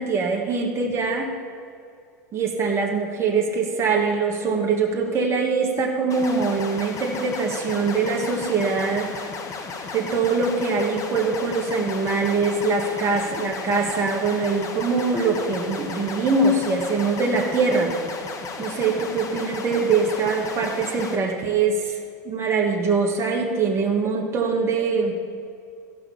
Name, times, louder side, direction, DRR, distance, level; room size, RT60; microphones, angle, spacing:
voice 1, 0.0-1.3 2.3-9.1 9.9-17.9 18.6-22.0 22.3-25.1, right 4 dB, 30° right, 0 dB, 1.6 m, -23 dB
sound 1, 6.1-21.2, left 4 dB, 35° left, 1.4 m, -34 dB
14.0 x 5.8 x 7.2 m, 2.4 s
hypercardioid pair, 95°, 10 cm